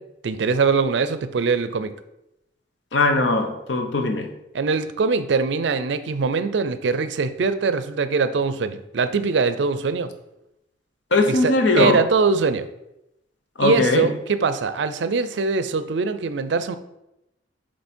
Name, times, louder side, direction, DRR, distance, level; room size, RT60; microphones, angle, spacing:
voice 1, 0.2-1.9 4.5-10.1 11.3-12.7 13.6-16.8, right 4 dB, 70° right, 12 dB, 0.4 m, -22 dB
voice 2, 2.9-4.3 11.1-12.0 13.6-14.1, left 2 dB, 85° left, 5 dB, 0.8 m, -20 dB
7.9 x 3.1 x 4.3 m, 0.89 s
head